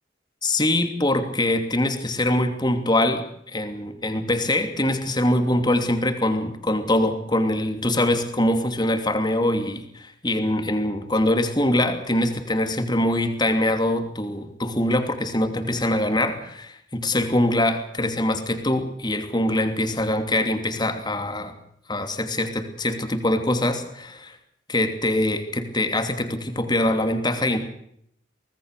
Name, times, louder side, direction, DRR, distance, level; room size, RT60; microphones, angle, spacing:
voice 1, 0.4-21.6 21.9-24.4 24.7-27.6, left 1 dB, 25° left, 7 dB, 2.8 m, -23 dB
24.5 x 19.0 x 6.7 m, 0.71 s
head